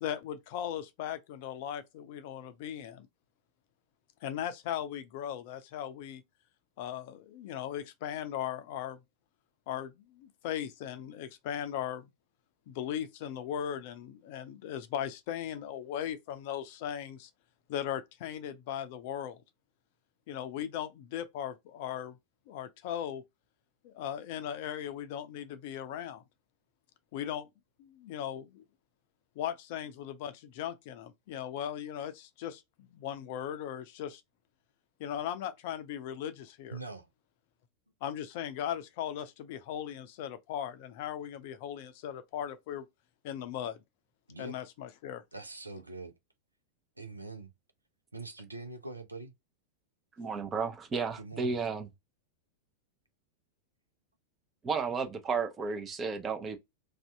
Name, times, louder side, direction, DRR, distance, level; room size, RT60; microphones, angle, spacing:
voice 1, 0.0-3.1 4.2-6.2 6.8-9.0 9.7-12.1 12.7-17.3 17.7-19.4 20.3-22.2 22.5-23.2 23.8-26.2 27.1-27.5 27.8-28.6 29.4-34.2 35.0-36.8 38.0-42.9 43.2-43.8 44.4-45.2, left 10 dB, 50° left, 0.5 m, -38 dB
voice 2, 36.7-37.1 44.3-44.6 45.3-46.1 47.0-47.5 48.1-49.3 51.2-51.6, right 3 dB, 80° right, 0.6 m, -43 dB
voice 3, 50.2-51.9 54.6-56.6, right 5 dB, 20° right, 0.7 m, -33 dB
2.6 x 2.4 x 3.3 m
figure-of-eight pair, 90°, 0 cm